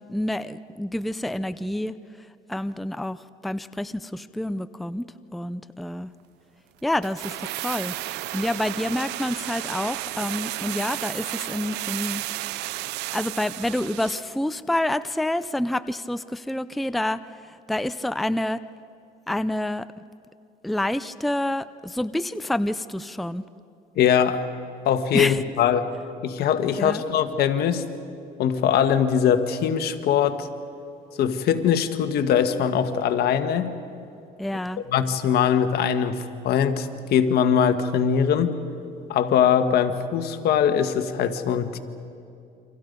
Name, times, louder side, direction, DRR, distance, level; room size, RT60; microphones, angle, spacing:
voice 1, 0.1-2.0 2.5-5.1 5.3-6.1 6.8-12.2 12.5-12.6 13.1-18.6 19.3-19.9 20.6-23.5 25.1-25.4 26.8-27.0 34.4-34.8, left 1 dB, ahead, 13 dB, 0.5 m, -28 dB
sound 1, 7.0-14.3 14.6-14.7, right 17 dB, 85° right, 0.5 m, -33 dB
voice 2, 23.9-24.4 24.8-25.9 26.2-27.8 28.4-30.5 31.2-33.7 34.9-38.6 39.1-41.8, left 8 dB, 70° left, 8 dB, 1.5 m, -22 dB
28.5 x 25.5 x 5.3 m, 2.5 s
cardioid pair, 110°, 17 cm